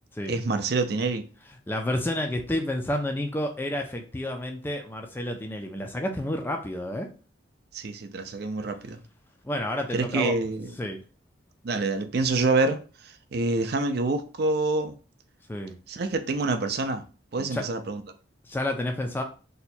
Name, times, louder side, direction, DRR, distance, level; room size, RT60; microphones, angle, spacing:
voice 1, 0.3-1.2 7.7-9.0 9.9-10.7 11.6-15.0 15.9-17.0 17.3-18.0, right 3 dB, 55° right, 0.4 m, -27 dB
voice 2, 1.7-7.1 9.4-10.3 10.8-11.0 15.5-15.7 17.4-17.7 18.4-19.2, left 1 dB, 10° left, 0.4 m, -30 dB
2.8 x 2.2 x 4.2 m
head